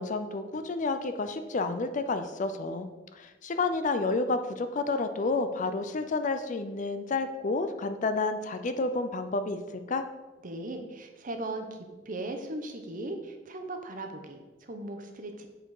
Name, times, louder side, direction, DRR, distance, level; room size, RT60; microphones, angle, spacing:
voice 1, 0.0-10.1, left 3 dB, 45° left, 9 dB, 0.5 m, -30 dB
voice 2, 10.4-15.5, right 2 dB, 45° right, 5 dB, 0.9 m, -38 dB
7.5 x 4.4 x 4.8 m, 1.2 s
head